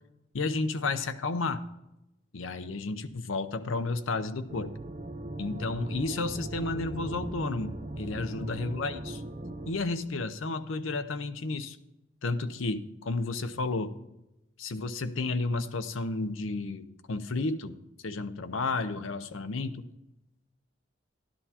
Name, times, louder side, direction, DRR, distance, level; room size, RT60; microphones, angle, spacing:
voice 1, 0.3-1.6 2.3-4.7 5.4-9.2 9.7-11.8 12.2-13.9 14.6-17.8 18.0-19.8, left 3 dB, 85° left, 10 dB, 0.7 m, -32 dB
sound 1, 4.5-9.7, right 2 dB, 35° right, 0.6 m, -39 dB
12.0 x 11.5 x 2.8 m, 0.93 s
head